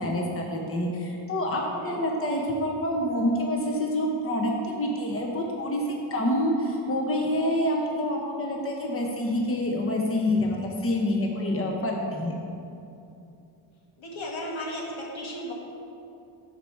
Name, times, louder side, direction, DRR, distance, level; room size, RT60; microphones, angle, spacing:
voice 1, 0.0-12.4, left 1 dB, 25° left, 0 dB, 1.1 m, -27 dB
voice 2, 14.0-15.5, left 1 dB, 75° left, -2 dB, 1.8 m, -35 dB
11.0 x 4.7 x 4.6 m, 2.7 s
cardioid pair, 75°, 49 cm